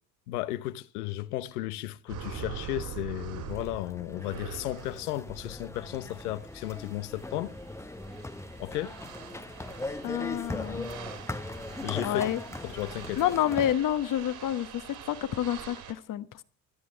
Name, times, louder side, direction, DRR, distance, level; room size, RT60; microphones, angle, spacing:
voice 1, 0.3-7.5 8.6-8.9 11.8-12.4 12.6-13.2, left 15 dB, 75° left, 1.1 m, -34 dB
sound 1, 2.1-15.9, right 9 dB, 55° right, 4.3 m, -44 dB
sound 2, 3.5-13.8, left 2 dB, 5° left, 0.9 m, -40 dB
voice 2, 10.0-10.9 12.0-12.4 13.2-16.4, left 11 dB, 45° left, 1.3 m, -29 dB
17.5 x 13.0 x 4.7 m
hypercardioid pair, 65°, 46 cm